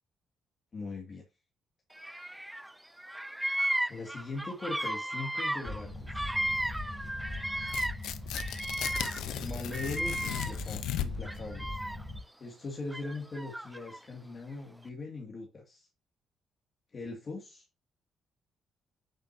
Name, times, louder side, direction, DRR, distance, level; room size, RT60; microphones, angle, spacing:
voice 1, 0.7-1.2 3.9-6.3 9.4-11.8 12.4-15.9 16.9-17.6, left 3 dB, 40° left, 2.4 m, -40 dB
Bird vocalization bird call bird song, 2.0-2.7 3.0-8.1 8.3-10.7 11.2-12.2 12.9-14.0, right 1 dB, 5° right, 0.4 m, -35 dB
sound 1, 5.6-12.2, left 2 dB, 15° left, 4.2 m, -41 dB
Tearing, 7.6-11.4, left 11 dB, 85° left, 0.8 m, -37 dB
9.2 x 6.6 x 2.8 m
cardioid pair, 90°, 0 cm